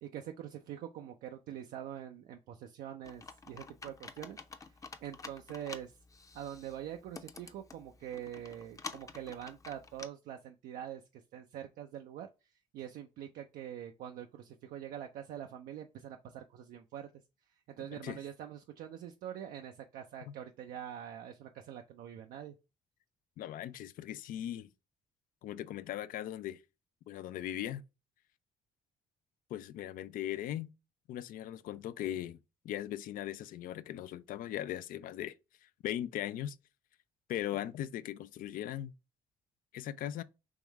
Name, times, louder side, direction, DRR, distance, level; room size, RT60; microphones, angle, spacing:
voice 1, 0.0-6.0 6.3-12.3 12.7-17.1 17.8-22.5, right 10 dB, 85° right, 0.5 m, -44 dB
Computer keyboard, 3.0-10.1, left 4 dB, 25° left, 0.6 m, -50 dB
voice 2, 23.4-24.7 25.4-26.6 27.1-27.8 29.5-30.7 31.1-32.4 32.6-35.3 35.6-36.6 37.3-38.9 39.7-40.2, left 12 dB, 75° left, 0.4 m, -39 dB
3.6 x 3.0 x 4.6 m
cardioid pair, 80°, 14 cm